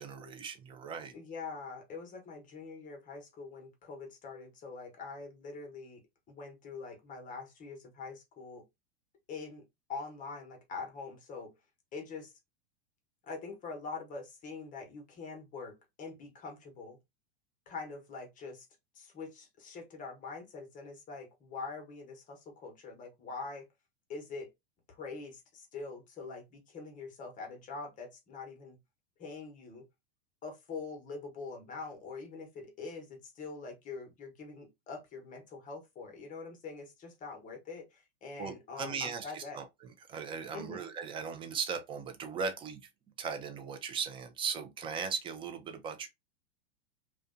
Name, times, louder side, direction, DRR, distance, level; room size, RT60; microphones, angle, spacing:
voice 1, 0.0-1.1 38.4-42.8 43.2-46.1, right 6 dB, 15° right, 0.4 m, -38 dB
voice 2, 1.1-6.0 6.3-8.6 9.3-9.6 9.9-11.5 11.9-12.3 13.2-17.0 17.7-18.7 18.9-23.7 24.1-24.5 24.9-28.8 29.2-29.9 30.4-39.6 40.5-40.9, left 4 dB, 25° left, 0.9 m, -44 dB
2.5 x 2.2 x 2.4 m
hypercardioid pair, 125°, 31 cm